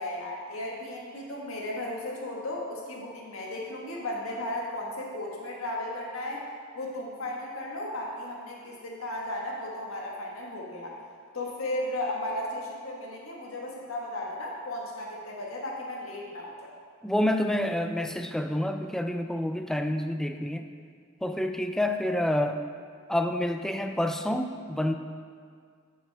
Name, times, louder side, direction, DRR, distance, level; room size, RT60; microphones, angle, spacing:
voice 1, 0.0-6.4 6.7-11.0 11.3-16.7, left 1 dB, 80° left, -3 dB, 1.5 m, -35 dB
voice 2, 17.0-20.7 21.2-22.6 23.1-24.9, left 1 dB, ahead, 6 dB, 0.3 m, -28 dB
12.0 x 6.3 x 3.4 m, 2.1 s
head